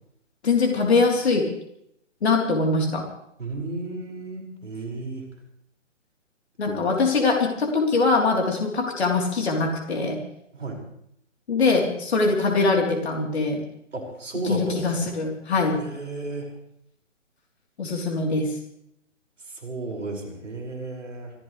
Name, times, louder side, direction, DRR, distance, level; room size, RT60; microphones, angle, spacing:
voice 1, 0.4-1.5 2.2-3.0 6.6-10.2 11.5-13.6 14.4-15.8 17.8-18.5, left 3 dB, 55° left, 0 dB, 3.9 m, -22 dB
voice 2, 3.4-5.2 6.6-6.8 10.5-10.8 13.9-15.1 15.8-16.5 19.5-21.3, right 2 dB, 70° right, 1 dB, 6.1 m, -33 dB
27.5 x 14.5 x 3.4 m, 0.74 s
figure-of-eight pair, 145°, 38 cm